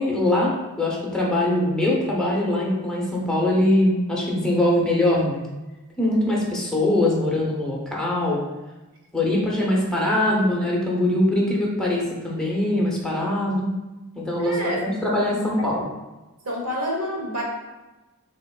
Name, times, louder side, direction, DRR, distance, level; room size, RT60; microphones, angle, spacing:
voice 1, 0.0-5.4 6.0-8.4 9.1-13.7 14.1-15.9, left 1 dB, 5° left, -4 dB, 0.9 m, -22 dB
voice 2, 14.4-14.8 16.4-17.4, equal, 75° right, -1 dB, 1.2 m, -28 dB
5.1 x 3.5 x 2.4 m, 1.1 s
head